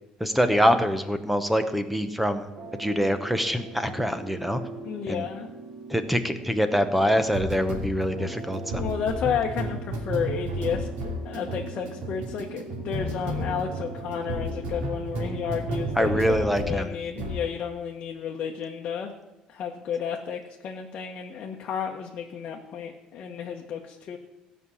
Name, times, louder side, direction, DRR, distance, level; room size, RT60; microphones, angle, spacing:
voice 1, 0.2-4.6 5.1-5.2 5.9-8.8 16.0-17.0, equal, 5° right, 10 dB, 0.8 m, -25 dB
sound 1, 2.6-16.8 17.2-17.5, right 1 dB, 85° right, 2.5 m, -34 dB
voice 2, 4.8-5.5 8.7-19.1 19.5-24.2, left 7 dB, 40° left, 0 dB, 1.1 m, -32 dB
16.0 x 5.5 x 8.3 m, 0.96 s
cardioid pair, 175°, 2 cm